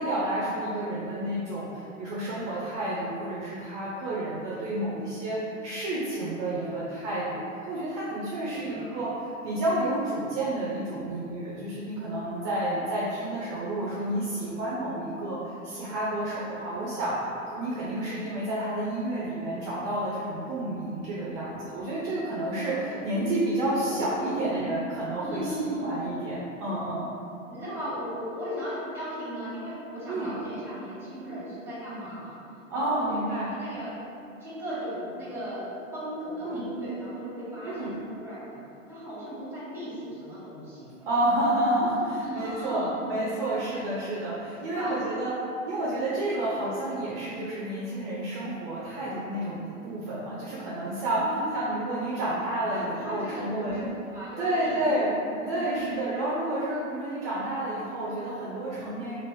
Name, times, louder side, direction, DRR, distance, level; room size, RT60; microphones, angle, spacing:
voice 1, 0.0-17.2 17.5-25.4 25.8-27.1 30.1-30.3 32.7-33.5 36.4-36.6 37.6-37.9 41.1-45.3 45.7-51.2 51.5-53.8 54.4-55.1 55.5-59.2, right 1 dB, 40° right, -7 dB, 0.6 m, -30 dB
voice 2, 6.5-6.9 8.5-9.0 12.4-12.5 16.6-16.8 22.6-22.7 23.1-23.3 23.8-24.6 25.2-26.0 27.5-32.4 32.7-33.1 33.5-33.9 34.4-38.6 38.9-40.9 42.1-42.9 44.7-45.0 46.3-46.5 51.1-51.6 52.7-53.8 54.1-54.8 55.3-56.0, right 1 dB, 5° right, -9 dB, 1.2 m, -37 dB
2.9 x 2.6 x 3.1 m, 2.7 s
figure-of-eight pair, 95°, 40 cm